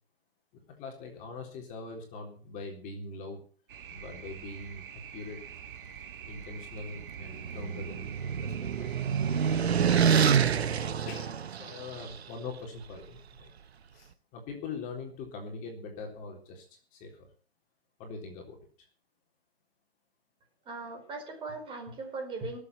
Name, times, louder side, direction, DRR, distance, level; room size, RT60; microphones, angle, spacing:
voice 1, 0.5-3.4 3.9-5.4 6.3-9.1 11.1-13.5 13.9-16.7 16.9-17.3 18.0-18.6, left 3 dB, 25° left, 2 dB, 3.9 m, -42 dB
sound 1, 3.7-9.6, right 8 dB, 55° right, 2.6 m, -46 dB
sound 2, 6.9-12.1, right 7 dB, 80° right, 1.2 m, -27 dB
voice 2, 20.7-22.6, right 3 dB, 15° right, 3 dB, 4.5 m, -39 dB
17.5 x 7.9 x 7.4 m, 0.41 s
hypercardioid pair, 145°, 31 cm